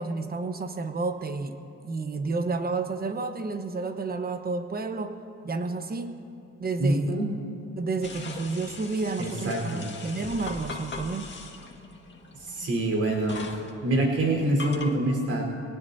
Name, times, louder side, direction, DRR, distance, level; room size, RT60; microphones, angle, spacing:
voice 1, 0.0-1.6 1.8-5.1 5.4-6.1 6.6-7.2 7.8-11.3, right 3 dB, 30° right, 7 dB, 1.2 m, -30 dB
voice 2, 6.8-7.2 9.2-9.8 12.4-13.4 13.8-15.4, right 1 dB, 55° right, -1 dB, 4.3 m, -25 dB
sound 1, 8.0-14.9, left 3 dB, 35° left, 1.8 m, -41 dB
24.0 x 18.0 x 2.8 m, 2.7 s
cardioid pair, 90°, 30 cm